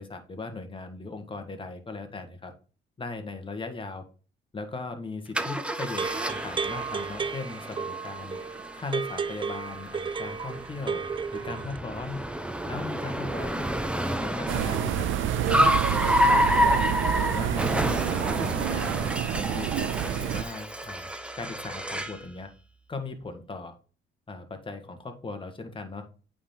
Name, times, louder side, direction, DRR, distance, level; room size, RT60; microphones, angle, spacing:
voice 1, 0.0-2.5 3.0-4.0 4.5-8.4 8.7-11.0 11.3-12.2 12.6-13.7 14.2-15.1 15.5-16.8 17.2-17.7 18.1-22.5 22.9-23.8 24.3-26.1, left 3 dB, 25° left, 6 dB, 1.5 m, -38 dB
Car, 5.3-22.2, equal, 5° right, 0.9 m, -29 dB
sound 1, 5.8-11.8, right 5 dB, 25° right, 0.4 m, -33 dB
sound 2, 14.5-20.4, right 11 dB, 80° right, 0.6 m, -28 dB
8.5 x 3.8 x 4.3 m, 0.37 s
cardioid pair, 90°, 20 cm